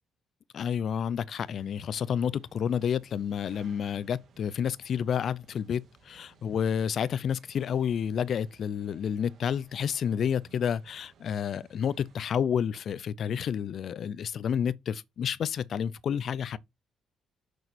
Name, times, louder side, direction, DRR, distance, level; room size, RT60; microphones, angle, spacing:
voice 1, 0.5-16.6, left 8 dB, 60° left, 0.6 m, -30 dB
sound 1, 1.4-12.3, right 6 dB, 65° right, 2.1 m, -60 dB
6.7 x 6.5 x 4.4 m
cardioid pair, 90°, 0 cm